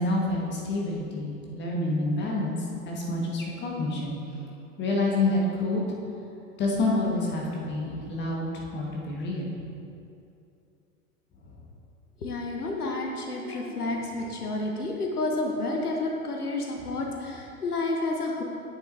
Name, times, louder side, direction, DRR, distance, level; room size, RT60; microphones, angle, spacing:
voice 1, 0.0-2.6 2.8-4.2 4.8-5.8 6.6-9.5, left 2 dB, 25° left, -2 dB, 1.6 m, -28 dB
voice 2, 12.2-18.4, left 2 dB, 75° left, 1 dB, 1.0 m, -30 dB
10.5 x 8.7 x 2.8 m, 2.6 s
figure-of-eight pair, 90°, 45 cm